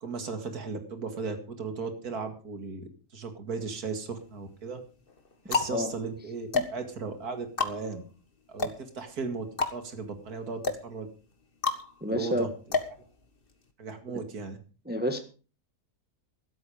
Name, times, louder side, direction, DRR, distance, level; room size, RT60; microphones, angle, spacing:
voice 1, 0.0-4.8 5.5-8.0 8.5-11.1 12.1-12.8 13.8-14.6, right 4 dB, 85° right, 7 dB, 2.6 m, -36 dB
sound 1, 3.6-4.3 5.0-13.7, left 4 dB, 40° left, 1.8 m, -33 dB
voice 2, 12.0-12.4 14.1-14.2 14.9-15.2, left 1 dB, 5° right, 6 dB, 1.4 m, -29 dB
14.5 x 12.5 x 5.0 m, 0.36 s
omnidirectional pair, 1.6 m